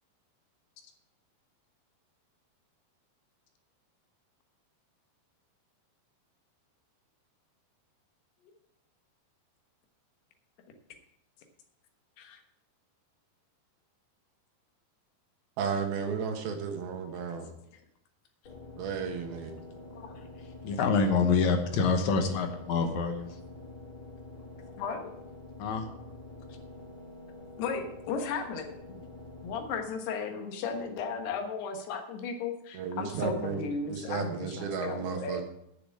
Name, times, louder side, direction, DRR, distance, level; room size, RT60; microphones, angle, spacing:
voice 1, 15.6-17.5 18.8-19.5 32.7-35.4, right 6 dB, 70° right, 4 dB, 3.2 m, -33 dB
sound 1, 18.4-30.1, left 2 dB, 35° left, 2.7 m, -47 dB
voice 2, 20.6-23.3 25.6-25.9, left 4 dB, 65° left, 5 dB, 1.9 m, -26 dB
voice 3, 24.7-25.1 27.6-29.0 29.4-35.4, left 5 dB, 85° left, 4 dB, 3.4 m, -35 dB
9.6 x 6.9 x 8.5 m, 0.79 s
omnidirectional pair, 4.6 m